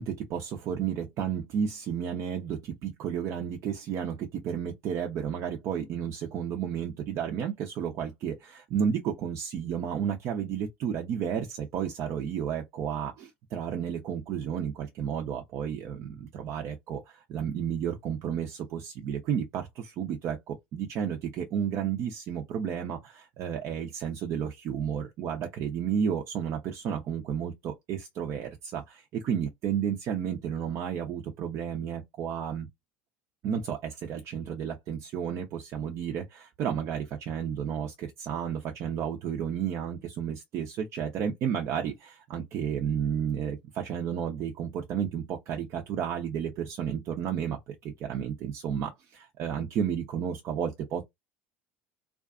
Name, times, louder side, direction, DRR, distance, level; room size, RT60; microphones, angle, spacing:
voice 1, 0.0-32.7 33.4-51.0, right 8 dB, 55° right, 0.6 m, -32 dB
2.5 x 2.3 x 2.4 m
hypercardioid pair, 80°, 6 cm